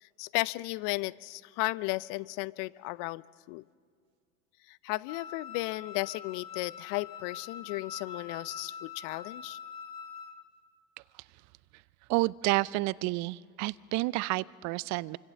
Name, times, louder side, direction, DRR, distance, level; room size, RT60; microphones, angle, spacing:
voice 1, 0.0-3.6 4.7-9.6, left 22 dB, 45° left, 20 dB, 0.6 m, -35 dB
Wind instrument woodwind instrument, 5.1-10.4, left 7 dB, 85° left, 2.0 m, -44 dB
voice 2, 12.1-15.2, right 21 dB, 40° right, 20 dB, 0.6 m, -30 dB
28.5 x 25.0 x 7.5 m, 2.1 s
hypercardioid pair, 95°, 45 cm